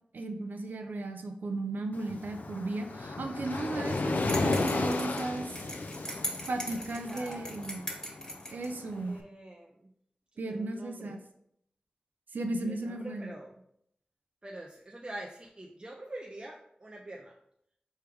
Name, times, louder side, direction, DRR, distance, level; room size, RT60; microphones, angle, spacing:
voice 1, 0.1-5.6 6.5-7.8 8.5-9.1 10.4-11.2 12.3-13.3, right 2 dB, 85° right, 5 dB, 0.5 m, -35 dB
Waves surf, 1.9-9.0, left 2 dB, 70° left, 0.5 m, -34 dB
Muffled Bell, 4.3-8.7, equal, 20° left, 1.4 m, -39 dB
voice 2, 6.9-7.6 8.9-9.9 10.3-11.3 12.5-13.5 14.4-17.4, right 1 dB, 35° right, -1 dB, 0.5 m, -45 dB
4.6 x 3.2 x 3.4 m, 0.72 s
cardioid pair, 45°, 3 cm